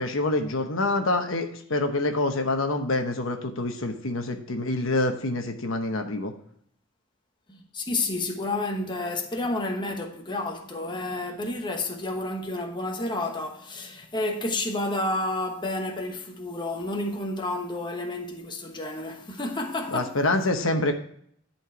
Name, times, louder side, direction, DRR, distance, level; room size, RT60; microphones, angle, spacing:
voice 1, 0.0-6.3 19.9-20.9, left 2 dB, 70° left, 1.0 m, -26 dB
voice 2, 7.5-20.1, left 2 dB, 20° left, 1.1 m, -30 dB
11.0 x 4.5 x 4.5 m
head